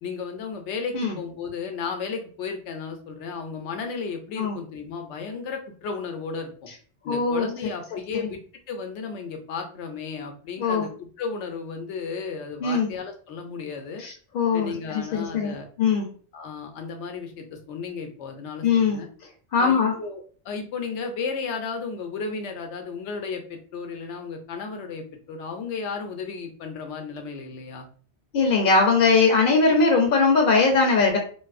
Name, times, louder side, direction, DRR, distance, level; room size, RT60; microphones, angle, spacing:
voice 1, 0.0-6.5 7.0-8.4 8.7-10.9 11.2-14.0 14.5-15.7 16.3-19.1 19.6-27.9, left 5 dB, 90° left, 4 dB, 0.9 m, -34 dB
voice 2, 7.1-7.5 10.6-10.9 12.6-12.9 14.0-15.5 15.8-16.1 18.6-19.0 19.5-19.9 28.3-31.2, left 4 dB, 60° left, 1 dB, 0.6 m, -20 dB
2.6 x 2.4 x 2.4 m, 0.43 s
omnidirectional pair, 1.2 m